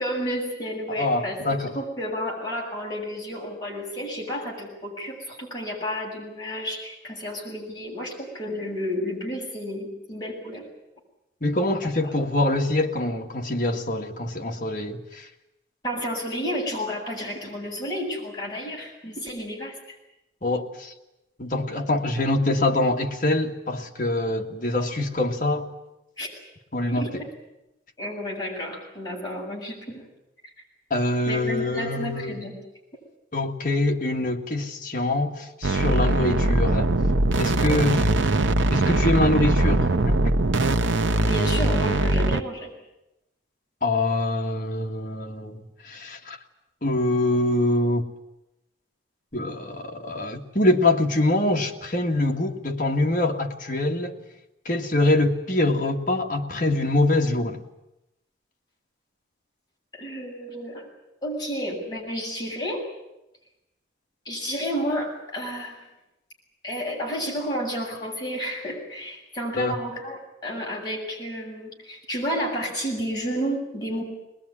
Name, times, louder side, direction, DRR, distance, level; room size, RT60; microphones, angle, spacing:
voice 1, 0.0-10.7 11.8-12.1 15.8-20.0 26.2-26.3 26.9-27.3 28.0-30.0 30.4-30.5 31.3-32.5 37.6-38.0 41.2-42.7 59.9-60.9 61.2-62.8 64.2-65.8 66.6-74.0, equal, 20° left, 7.8 m, -31 dB
voice 2, 0.9-1.8 11.4-15.3 20.4-20.9 21.4-25.7 26.7-27.1 30.9-32.4 33.3-36.9 37.4-38.0 38.7-40.2 43.8-46.4 46.8-48.1 49.3-54.2 54.7-57.6 69.6-69.7, left 2 dB, 45° left, 2.0 m, -24 dB
sound 1, 35.6-42.4, right 2 dB, 90° right, 0.9 m, -21 dB
21.5 x 21.0 x 9.9 m
head